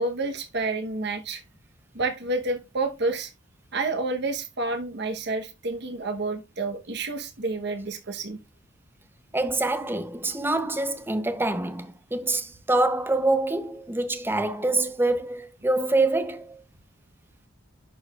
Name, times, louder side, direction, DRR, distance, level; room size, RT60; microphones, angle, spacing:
voice 1, 0.0-1.4 1.9-3.3 3.7-8.4, right 3 dB, 60° right, 1.0 m, -29 dB
voice 2, 9.3-16.6, right 2 dB, 10° right, 0.7 m, -25 dB
11.0 x 4.7 x 2.4 m
head